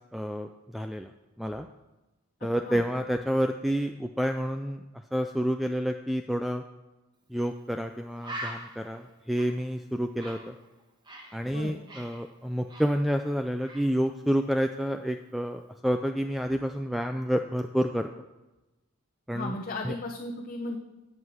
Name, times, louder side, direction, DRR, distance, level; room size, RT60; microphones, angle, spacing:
voice 1, 0.1-1.1 1.4-1.7 2.4-4.8 5.1-6.6 7.3-10.6 11.3-18.1 19.3-19.5 19.9-20.0, equal, ahead, 6 dB, 0.3 m, -29 dB
Bird, 7.4-7.5 7.8-7.9 8.2-11.4 11.7-13.3 13.6-13.9, right 1 dB, 20° right, 1.4 m, -43 dB
voice 2, 19.3-20.8, left 2 dB, 40° left, -1 dB, 0.9 m, -35 dB
11.0 x 7.5 x 6.3 m, 1.1 s
head